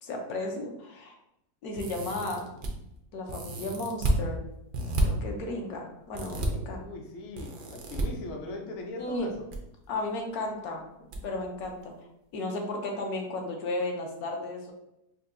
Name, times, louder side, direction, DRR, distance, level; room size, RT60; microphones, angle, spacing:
voice 1, 0.0-1.2 1.6-2.5 3.1-4.4 5.0-6.8 9.0-9.3 9.9-10.9 11.2-11.9 12.3-14.7, left 2 dB, 75° left, 1 dB, 1.2 m, -34 dB
sound 1, 1.8-2.7 3.3-4.2 4.7-5.0 6.1-6.5 7.4-8.0 9.2-9.6 9.8-9.9 11.1-11.2 11.6-11.7, right 1 dB, 85° right, 0.4 m, -30 dB
voice 2, 6.6-9.5, left 2 dB, 60° left, 1 dB, 0.7 m, -40 dB
5.4 x 2.2 x 2.6 m, 0.83 s
omnidirectional pair, 1.7 m